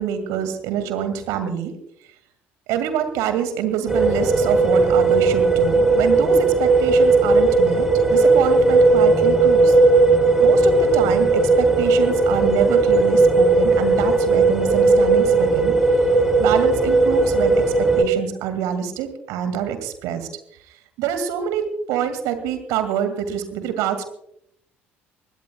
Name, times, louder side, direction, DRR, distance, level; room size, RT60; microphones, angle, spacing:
voice 1, 0.0-1.7 2.7-9.8 10.4-15.7 16.4-20.3 21.0-24.0, right 9 dB, 60° right, 9 dB, 2.2 m, -26 dB
sound 1, 3.9-18.0, right 3 dB, 10° right, 3.8 m, -16 dB
23.5 x 20.0 x 2.3 m, 0.74 s
figure-of-eight pair, 55°, 6 cm